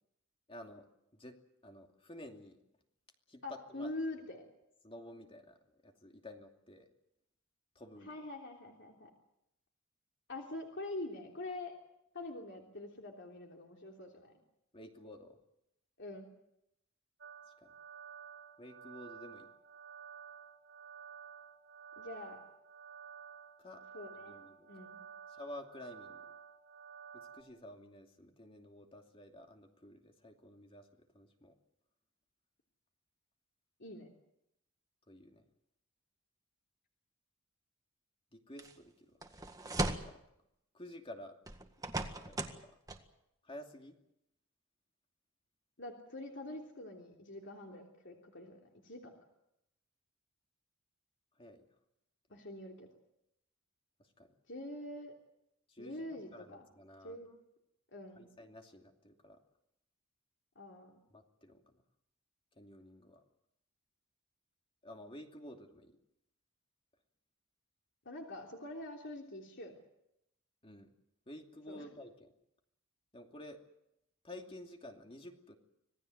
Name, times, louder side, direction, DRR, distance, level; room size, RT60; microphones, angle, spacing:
voice 1, 0.5-0.9 1.1-2.6 3.3-3.9 4.8-6.9 7.7-8.1 14.7-15.4 17.6-17.7 18.6-19.5 23.6-23.8 24.3-24.7 25.3-26.3 27.1-31.5 35.1-35.5 38.3-39.2 39.7-40.2 40.7-41.4 42.1-42.7 43.4-44.0 51.4-51.7 54.0-54.3 55.7-57.2 58.1-59.4 61.1-61.8 62.6-63.2 64.8-66.0 70.6-70.9 71.3-72.3 73.1-73.6 74.2-75.6, left 1 dB, 25° left, 3 dB, 2.7 m, -52 dB
voice 2, 3.4-4.4 8.0-9.1 10.3-11.7 12.1-14.3 16.0-16.3 22.0-22.4 23.9-24.3 24.7-25.0 33.8-34.1 45.8-49.1 52.3-52.9 54.5-55.1 55.8-56.7 57.0-57.3 57.9-58.3 60.5-60.9 68.0-69.7 71.7-71.9, left 2 dB, 55° left, 1 dB, 3.3 m, -45 dB
sound 1, 17.2-27.4, right 7 dB, 60° right, 4.8 m, -52 dB
sound 2, 38.6-38.7 39.2-40.2 41.5-42.6 42.9-43.0, right 2 dB, 15° right, 1.8 m, -37 dB
26.5 x 18.5 x 8.1 m, 0.83 s
head